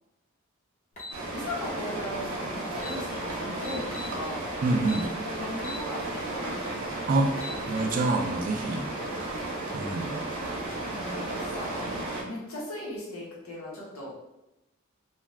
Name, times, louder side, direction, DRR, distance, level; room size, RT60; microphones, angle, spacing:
sound 1, 1.0-1.2 2.4-2.5 2.7-3.0 3.6-4.1 4.8-5.1 5.6-5.8 6.3-6.4 7.1-7.6, left 1 dB, 35° left, 0.7 m, -40 dB
sound 2, 1.1-12.2, right 2 dB, 80° right, 0.7 m, -34 dB
voice 1, 1.3-4.5 5.2-6.6 10.8-14.1, left 1 dB, 90° left, -4 dB, 0.9 m, -38 dB
voice 2, 4.6-5.1 7.1-7.3 7.7-8.9 9.7-10.1, right 2 dB, 40° right, 4 dB, 0.3 m, -26 dB
2.5 x 2.3 x 3.1 m, 0.91 s
head